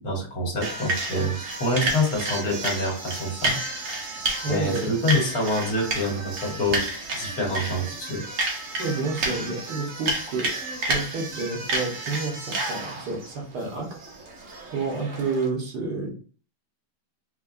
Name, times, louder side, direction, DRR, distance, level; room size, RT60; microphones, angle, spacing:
voice 1, 0.0-4.1 4.5-6.8 7.1-8.2, left 1 dB, 60° left, -1 dB, 1.8 m, -26 dB
sound 1, 0.6-15.5, right 2 dB, 55° right, 1.2 m, -31 dB
voice 2, 4.4-5.0 8.8-10.5 10.9-13.9 14.7-16.1, right 3 dB, 70° right, 0 dB, 1.7 m, -29 dB
5.7 x 2.3 x 2.5 m, 0.42 s
omnidirectional pair, 1.8 m